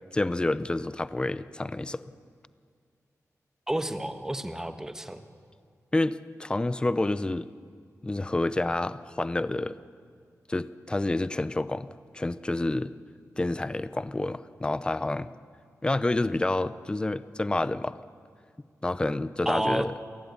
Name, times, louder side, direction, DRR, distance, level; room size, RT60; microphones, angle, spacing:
voice 1, 0.1-2.0 5.9-7.5 8.0-9.8 10.5-11.9 12.1-12.9 13.4-15.3 15.8-18.0 18.8-19.9, left 2 dB, 15° left, 15 dB, 0.6 m, -28 dB
voice 2, 3.7-5.2 19.4-19.9, right 1 dB, 10° right, 8 dB, 1.3 m, -30 dB
28.0 x 15.5 x 9.7 m, 2.2 s
wide cardioid pair, 145°, 6 cm